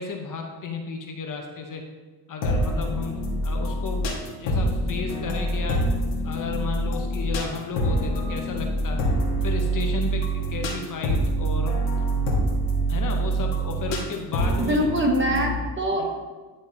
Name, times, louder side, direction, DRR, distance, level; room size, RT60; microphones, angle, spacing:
voice 1, 0.0-1.8 2.3-4.1 4.4-5.9 6.2-9.0 9.4-11.8 12.9-15.0 16.0-16.1, left 4 dB, 40° left, 3 dB, 0.8 m, -33 dB
sound 1, 2.4-15.6, right 1 dB, 65° left, 1.6 m, -25 dB
voice 2, 14.6-16.1, right 1 dB, 25° right, 1 dB, 1.3 m, -23 dB
10.5 x 3.5 x 2.7 m, 1.4 s
supercardioid pair, 80°, 48 cm